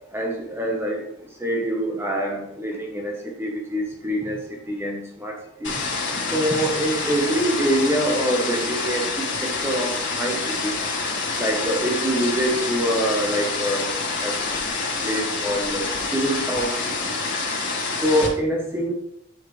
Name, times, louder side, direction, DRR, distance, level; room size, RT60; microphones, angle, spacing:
voice 1, 0.1-1.1 1.4-4.4 4.7-5.8 6.3-10.7 11.4-13.9 14.2-14.6 15.0-17.0 18.0-18.9, right 1 dB, 10° right, 0 dB, 0.9 m, -25 dB
sound 1, 5.6-18.3, left 3 dB, 55° left, 2.0 m, -27 dB
9.1 x 4.8 x 3.1 m, 0.76 s
head